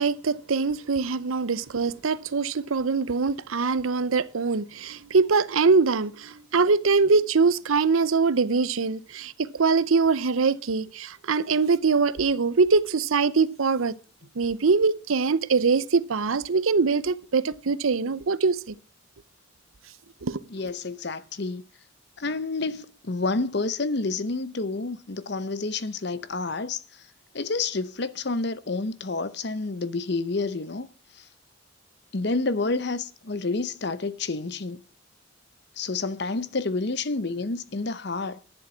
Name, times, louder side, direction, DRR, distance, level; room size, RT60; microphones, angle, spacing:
voice 1, 0.0-14.0 14.4-18.7 20.2-20.4, right 4 dB, 85° right, 0.7 m, -23 dB
voice 2, 20.5-21.6 22.2-27.0 27.3-30.9 31.1-31.3 32.1-34.8 35.8-38.4, left 3 dB, 55° left, 0.8 m, -29 dB
11.0 x 7.4 x 6.1 m
head